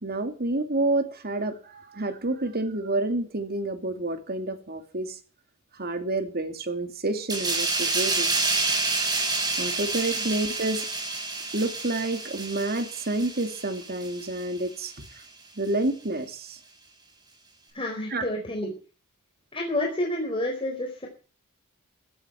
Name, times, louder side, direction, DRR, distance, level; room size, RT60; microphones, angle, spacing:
voice 1, 0.0-5.2 5.7-8.3 9.6-10.9 11.5-14.9 15.6-16.6 18.1-18.2, right 2 dB, 45° right, 2.6 m, -29 dB
sound 1, 7.3-14.5 14.8-15.0, right 3 dB, 20° right, 7.5 m, -28 dB
voice 2, 17.7-18.7 19.5-21.1, left 1 dB, 25° left, 4.5 m, -29 dB
15.5 x 14.5 x 4.6 m
head